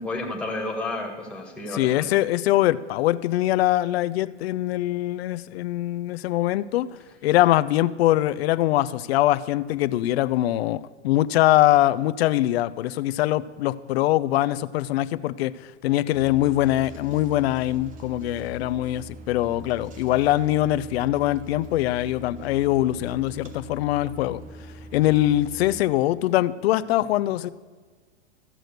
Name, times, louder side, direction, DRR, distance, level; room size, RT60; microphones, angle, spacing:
voice 1, 0.0-2.2, left 2 dB, 5° left, 0 dB, 1.7 m, -31 dB
voice 2, 1.7-6.9 7.2-15.6 15.8-24.4 24.9-27.5, left 15 dB, 55° left, 15 dB, 0.5 m, -23 dB
sound 1, 16.1-25.8, right 2 dB, 20° right, 0.8 m, -43 dB
13.5 x 6.3 x 6.6 m, 1.5 s
hypercardioid pair, 135°, 36 cm